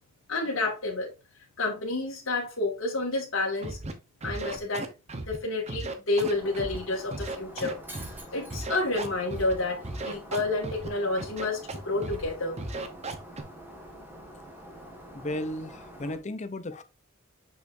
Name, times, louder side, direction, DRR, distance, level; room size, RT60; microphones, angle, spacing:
voice 1, 0.3-1.1 1.6-3.8 4.2-4.9 5.3-7.8 8.1-12.6, left 2 dB, 70° left, 2.0 m, -29 dB
Scratching (performance technique), 3.6-3.9 4.2-5.4 5.7-6.8 7.1-8.2 8.5-9.5 9.8-10.9 11.2-11.8 12.0-12.3 12.6-13.4, right 2 dB, 35° right, 0.9 m, -35 dB
Shatter, 6.2-16.2, equal, 10° right, 1.6 m, -46 dB
voice 2, 15.1-16.8, left 1 dB, 35° left, 0.7 m, -34 dB
6.5 x 5.5 x 2.6 m
head